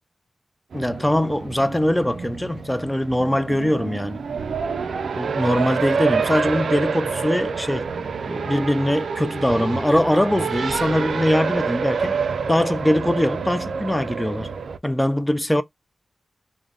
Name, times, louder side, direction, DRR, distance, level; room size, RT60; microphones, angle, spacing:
voice 1, 0.7-4.2 5.2-7.9 8.3-12.2 12.5-14.5 14.8-15.6, left 1 dB, 5° left, 0.3 m, -22 dB
Race car auto racing, 0.7-14.8, right 5 dB, 80° right, 0.3 m, -27 dB
3.6 x 2.1 x 3.3 m
wide cardioid pair, 165°, 0 cm